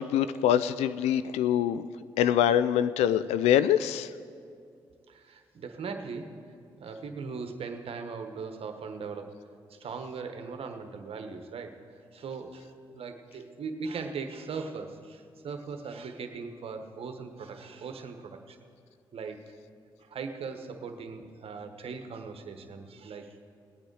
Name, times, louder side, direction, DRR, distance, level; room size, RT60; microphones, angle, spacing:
voice 1, 0.0-1.8 2.2-4.1, left 10 dB, 80° left, 15 dB, 0.4 m, -24 dB
voice 2, 5.1-6.4 6.8-9.3 9.7-11.7 12.1-18.6 19.1-19.5 20.0-23.4, right 5 dB, 60° right, 6 dB, 1.2 m, -39 dB
19.0 x 8.8 x 4.8 m, 2.2 s
hypercardioid pair, 45°, 11 cm